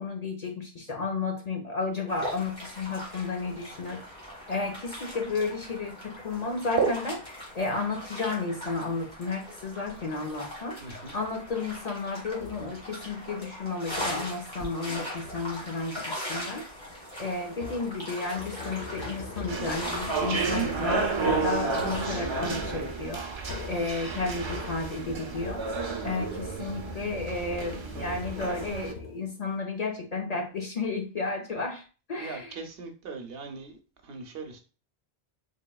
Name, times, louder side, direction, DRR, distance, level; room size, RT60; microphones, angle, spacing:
voice 1, 0.0-4.0 4.5-7.1 7.5-16.6 17.2-23.2 23.7-25.7 26.0-31.8 32.1-32.6, left 3 dB, 45° left, 2 dB, 0.6 m, -32 dB
sound 1, 2.1-22.0, equal, 25° left, 1.7 m, -40 dB
voice 2, 10.8-11.1 27.9-28.2 32.2-34.6, right 5 dB, 70° right, 5 dB, 0.9 m, -34 dB
sound 2, 12.4-12.9 13.9-14.4 15.2-15.8 17.5-26.1 26.3-29.5, left 3 dB, 80° left, 1.0 m, -43 dB
sound 3, 19.5-28.9, right 4 dB, 40° right, 0.4 m, -32 dB
3.6 x 3.6 x 2.2 m, 0.35 s
omnidirectional pair, 1.1 m